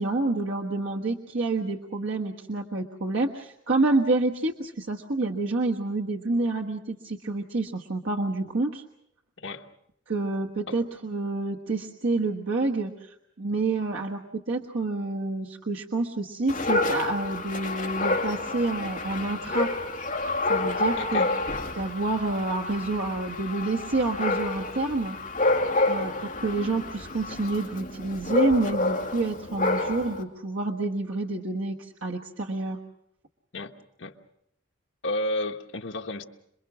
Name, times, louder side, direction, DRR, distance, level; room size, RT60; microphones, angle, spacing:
voice 1, 0.0-8.8 10.1-19.7 20.5-21.4 21.7-25.2 25.9-32.8, right 2 dB, 80° right, 0 dB, 1.4 m, -28 dB
Dog, 16.5-30.2, left 2 dB, 40° left, 2.3 m, -29 dB
voice 2, 21.0-21.3 33.5-33.7 34.0-34.1 35.0-36.2, left 1 dB, 70° left, 4 dB, 1.4 m, -32 dB
27.5 x 22.5 x 6.2 m, 0.77 s
head